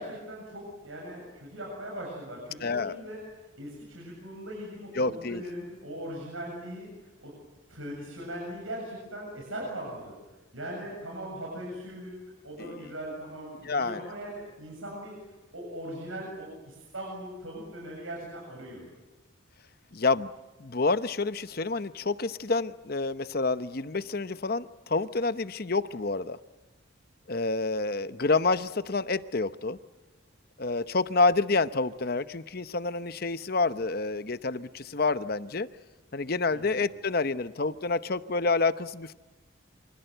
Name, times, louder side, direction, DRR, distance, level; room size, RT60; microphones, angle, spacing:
voice 1, 0.0-3.2 3.6-6.9 7.2-7.3 7.7-10.1 10.5-12.2 12.4-15.2 15.5-18.8 36.5-36.8, right 1 dB, 85° right, -2 dB, 7.6 m, -40 dB
voice 2, 2.6-3.0 4.9-5.4 12.6-12.9 13.6-14.0 19.9-20.3 20.6-26.4 27.3-29.8 30.6-35.7 36.1-39.1, left 3 dB, 50° left, 13 dB, 0.8 m, -28 dB
28.0 x 25.5 x 8.0 m, 1.1 s
head